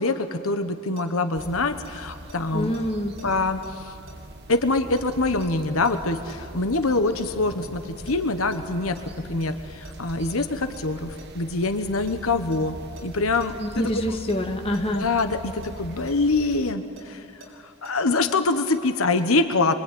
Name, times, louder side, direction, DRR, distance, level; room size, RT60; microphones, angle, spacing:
voice 1, 0.0-2.7 3.2-3.9 4.5-9.0 9.2-13.8 15.0-17.2 17.8-19.7, left 3 dB, 80° left, 8 dB, 1.3 m, -24 dB
sound 1, 1.0-6.8 7.2-9.5 9.8-9.9 10.3-10.8 11.2-14.4 14.7-14.9 15.2-15.3 15.6-15.7 16.1-18.8 19.2-19.3, right 1 dB, 65° right, 6.4 m, -47 dB
sound 2, 1.3-16.7, right 1 dB, 50° right, 1.3 m, -42 dB
voice 2, 2.5-3.2 13.6-15.1, equal, 25° left, 2 dB, 2.2 m, -26 dB
25.5 x 24.0 x 9.5 m, 2.4 s
head